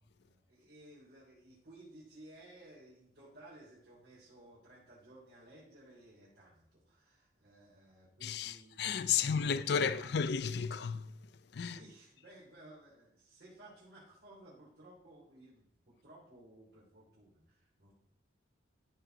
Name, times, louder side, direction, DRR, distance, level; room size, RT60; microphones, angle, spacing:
voice 1, 0.1-10.2 11.6-17.9, right 1 dB, 55° right, 3.2 m, -57 dB
voice 2, 8.2-11.1 11.5-11.8, left 6 dB, 55° left, 0.4 m, -33 dB
13.5 x 4.6 x 3.9 m
head